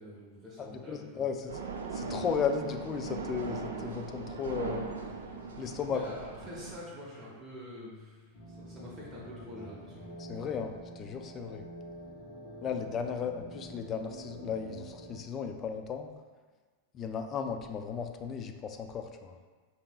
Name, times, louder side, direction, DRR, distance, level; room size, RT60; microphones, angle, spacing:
voice 1, 0.0-1.5 5.9-10.1, equal, 15° right, -7 dB, 0.9 m, -46 dB
voice 2, 0.6-1.5 1.9-4.8 5.6-6.1 10.2-11.6 12.6-16.1 16.9-19.4, left 6 dB, 30° left, 6 dB, 0.3 m, -35 dB
sound 1, 1.5-6.8, right 4 dB, 65° right, 0.3 m, -39 dB
Electric guitar / Strum, 3.5-13.2, left 2 dB, 80° left, 1.1 m, -59 dB
sound 2, 8.3-15.2, right 1 dB, 55° left, 1.3 m, -47 dB
5.1 x 2.8 x 2.2 m, 1.4 s
figure-of-eight pair, 90°, 0 cm